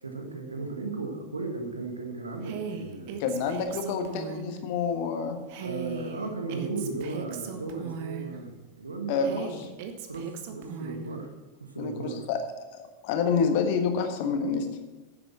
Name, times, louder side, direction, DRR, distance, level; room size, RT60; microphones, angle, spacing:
voice 1, 0.0-3.2 3.6-3.7 5.6-9.6 10.1-11.3 11.6-12.3, right 3 dB, 75° right, 4 dB, 1.5 m, -36 dB
Female speech woman speaking, 2.4-4.6 5.5-8.4 9.2-11.1, right 6 dB, 50° right, 1.1 m, -38 dB
voice 2, 3.2-5.4 9.1-9.6 11.8-12.4 12.7-14.7, left 5 dB, 45° left, 6 dB, 1.4 m, -28 dB
10.5 x 7.9 x 6.0 m, 1.1 s
figure-of-eight pair, 90°, 0 cm